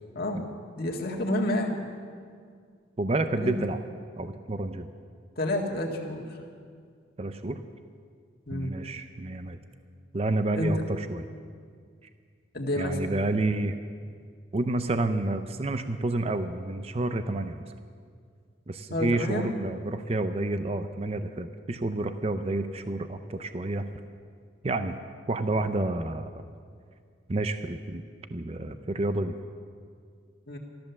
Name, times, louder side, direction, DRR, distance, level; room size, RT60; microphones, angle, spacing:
voice 1, 0.8-1.8 3.4-3.6 5.4-6.5 8.5-8.8 10.6-10.9 12.5-13.1 18.9-19.5 30.5-30.6, left 1 dB, 50° left, 0 dB, 1.9 m, -29 dB
voice 2, 3.0-3.8 4.2-4.9 7.2-7.6 8.5-9.6 10.1-11.2 12.8-13.8 14.5-17.6 18.7-23.8 24.6-24.9 25.3-26.3 27.3-28.0 28.3-29.3, right 2 dB, 30° right, 9 dB, 0.5 m, -29 dB
14.0 x 13.0 x 7.0 m, 2.1 s
head